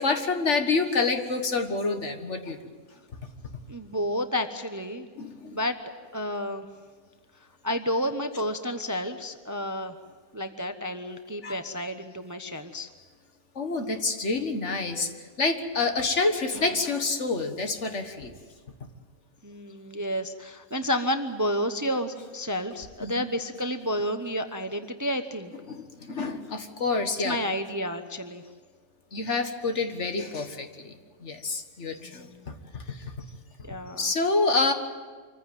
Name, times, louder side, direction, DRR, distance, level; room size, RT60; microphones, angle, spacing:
voice 1, 0.0-2.6 5.2-5.6 11.4-11.5 13.6-15.1 15.4-18.4 23.0-23.3 25.7-27.4 29.1-30.9 31.2-33.1 34.0-34.7, left 3 dB, 60° left, 6 dB, 1.9 m, -27 dB
voice 2, 3.7-5.1 5.5-5.7 6.1-6.7 7.6-10.0 10.3-12.9 19.4-25.5 27.2-28.4 32.0-32.5 33.7-34.1, equal, 15° right, 8 dB, 0.8 m, -30 dB
25.5 x 15.0 x 9.1 m, 1.5 s
omnidirectional pair, 1.4 m